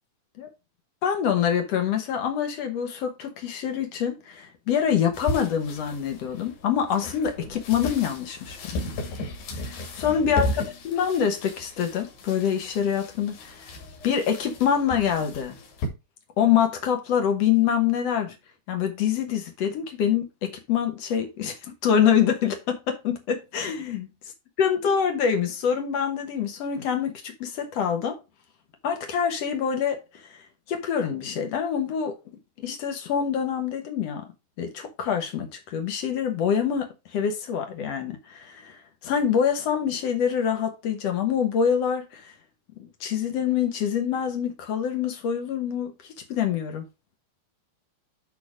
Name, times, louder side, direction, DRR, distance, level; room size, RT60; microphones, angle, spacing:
voice 1, 1.0-8.8 9.6-13.7 14.0-15.6 16.4-18.3 18.7-24.1 24.6-28.2 28.8-30.4 30.7-32.2 32.6-34.3 34.6-42.3 42.8-46.8, left 8 dB, 70° left, 1.5 m, -25 dB
sound 1, 5.1-15.9, left 1 dB, 90° left, 4.8 m, -35 dB
10.5 x 3.7 x 4.9 m
omnidirectional pair, 4.6 m